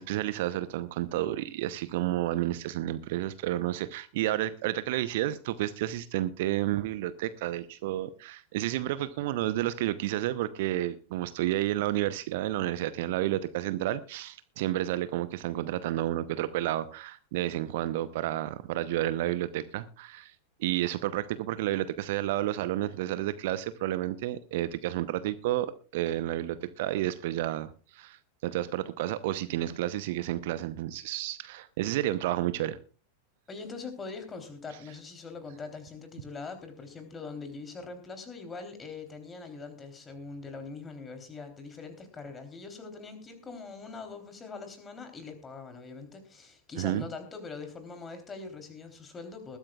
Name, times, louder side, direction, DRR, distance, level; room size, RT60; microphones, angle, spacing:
voice 1, 0.0-20.3 20.6-32.8 46.8-47.1, right 14 dB, 50° right, 14 dB, 0.8 m, -31 dB
voice 2, 33.5-49.6, left 4 dB, 20° left, 7 dB, 3.5 m, -42 dB
21.0 x 13.5 x 2.4 m, 0.34 s
figure-of-eight pair, 90°, 0 cm